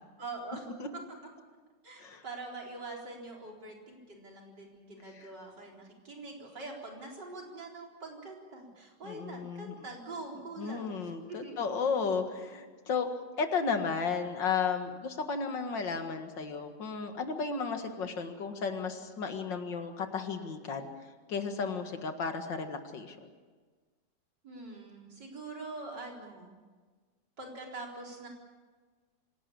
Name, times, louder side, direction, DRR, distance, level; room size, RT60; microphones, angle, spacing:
voice 1, 0.2-0.7 0.9-1.0 1.8-11.0 11.3-11.6 24.4-26.5 27.4-28.3, right 3 dB, 70° right, 0 dB, 4.8 m, -44 dB
voice 2, 9.0-9.7 10.6-13.1 13.4-20.9 21.3-23.2, left 5 dB, 85° left, 6 dB, 2.6 m, -33 dB
26.0 x 17.5 x 8.5 m, 1.4 s
omnidirectional pair, 1.9 m